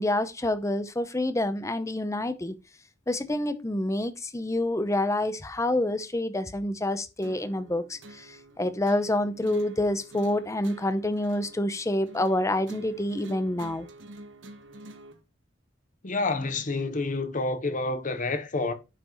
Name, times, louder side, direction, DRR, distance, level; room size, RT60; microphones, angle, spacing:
voice 1, 0.0-2.5 3.1-13.9, left 1 dB, 15° left, 0.7 m, -27 dB
sound 1, 7.2-15.2, right 1 dB, 80° right, 1.1 m, -47 dB
voice 2, 16.0-18.7, left 3 dB, 45° left, 0.9 m, -28 dB
9.2 x 5.9 x 3.1 m
head